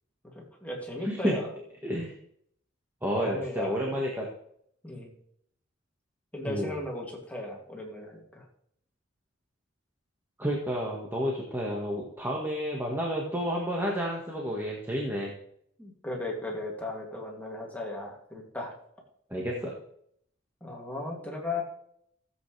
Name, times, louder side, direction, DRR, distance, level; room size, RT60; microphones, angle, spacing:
voice 1, 0.3-1.5 3.1-4.0 4.8-5.1 6.3-8.4 15.8-18.7 20.6-21.6, left 2 dB, 5° left, -2 dB, 2.6 m, -36 dB
voice 2, 1.0-1.4 1.8-2.1 3.0-4.3 6.5-6.8 10.4-15.3 19.3-19.7, equal, 10° right, -3 dB, 1.6 m, -30 dB
16.0 x 8.3 x 3.3 m, 0.69 s
head